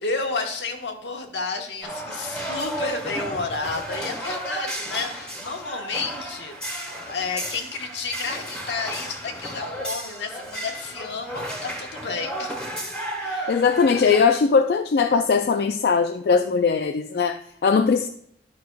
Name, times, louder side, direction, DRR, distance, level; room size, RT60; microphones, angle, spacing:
voice 1, 0.0-12.6 13.2-13.7, left 4 dB, 85° left, 3 dB, 1.2 m, -31 dB
sound 1, 1.8-14.2, right 1 dB, 5° left, 1.5 m, -33 dB
voice 2, 13.5-18.1, left 5 dB, 60° left, 7 dB, 0.3 m, -20 dB
10.5 x 6.1 x 2.3 m, 0.69 s
head